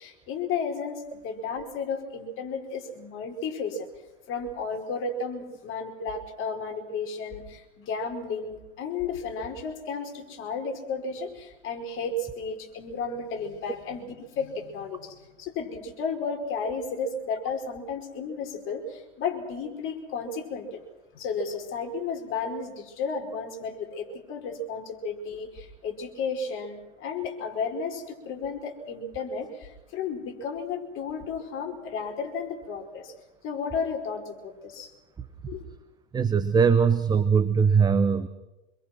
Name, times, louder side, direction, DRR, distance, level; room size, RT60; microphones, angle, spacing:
voice 1, 0.0-3.9 4.3-20.8 21.1-33.1 33.4-34.9 35.5-35.6, left 4 dB, 35° left, 3 dB, 4.9 m, -33 dB
voice 2, 36.1-38.3, right 6 dB, 10° right, 12 dB, 0.8 m, -21 dB
26.5 x 22.5 x 6.1 m, 1.0 s
hypercardioid pair, 120°, 34 cm